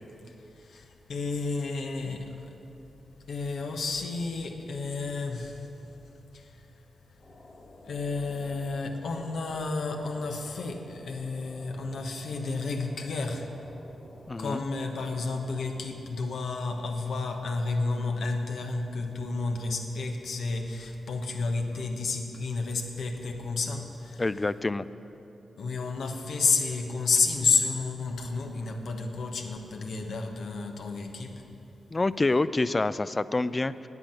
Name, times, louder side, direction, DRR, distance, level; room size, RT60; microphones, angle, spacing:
voice 1, 0.2-2.6 3.3-7.2 7.8-13.5 14.4-24.2 25.6-31.4, left 3 dB, 75° left, 3 dB, 1.1 m, -31 dB
sound 1, 7.2-15.9, left 1 dB, 50° left, 2.7 m, -51 dB
voice 2, 14.3-14.6 24.2-24.9 31.9-33.9, left 2 dB, 35° left, 15 dB, 0.4 m, -27 dB
9.8 x 9.0 x 7.7 m, 2.9 s
supercardioid pair, 40°, 0 cm